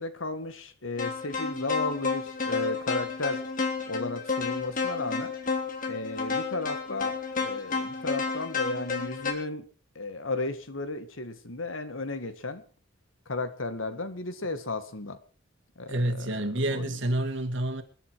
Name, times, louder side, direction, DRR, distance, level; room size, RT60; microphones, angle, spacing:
voice 1, 0.0-3.4 3.9-5.3 5.9-9.6 10.0-12.6 13.3-15.2 15.8-17.0, left 2 dB, 90° left, 1.9 m, -34 dB
sound 1, 1.0-9.3, left 4 dB, 45° left, 3.3 m, -31 dB
voice 2, 15.9-17.8, right 1 dB, 65° right, 2.5 m, -28 dB
27.5 x 10.0 x 4.8 m
head